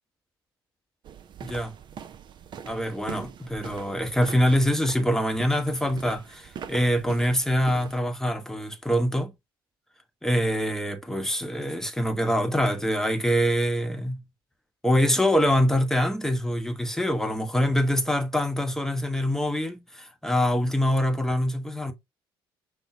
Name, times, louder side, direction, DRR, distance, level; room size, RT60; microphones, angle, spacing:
sound 1, 1.0-8.0, right 8 dB, 40° right, 0.5 m, -43 dB
voice 1, 1.4-1.7 2.7-9.3 10.2-14.2 14.8-21.9, equal, 5° left, 0.8 m, -24 dB
5.4 x 2.1 x 4.3 m
figure-of-eight pair, 50°, 13 cm